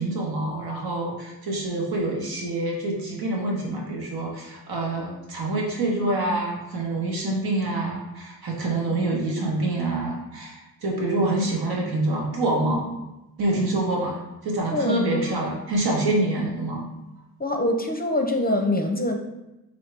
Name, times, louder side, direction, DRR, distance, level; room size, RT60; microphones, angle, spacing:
voice 1, 0.0-12.8 13.4-16.9, right 2 dB, 75° right, -2 dB, 1.2 m, -26 dB
voice 2, 14.7-15.4 17.4-19.2, left 1 dB, 25° left, 4 dB, 0.6 m, -24 dB
4.2 x 2.7 x 3.3 m, 0.99 s
cardioid pair, 50°, 37 cm